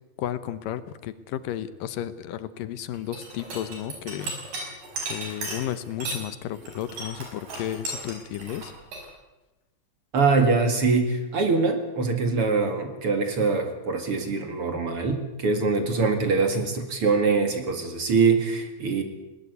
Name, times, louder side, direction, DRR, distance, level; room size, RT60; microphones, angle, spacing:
voice 1, 0.2-4.3 5.1-8.7, left 11 dB, 75° left, 14 dB, 2.5 m, -33 dB
sound 1, 2.9-6.2 6.5-9.0, right 2 dB, 70° right, 6.7 m, -35 dB
voice 2, 10.1-19.0, right 4 dB, 45° right, 6 dB, 2.5 m, -23 dB
20.5 x 18.5 x 8.1 m, 1.1 s
omnidirectional pair, 4.0 m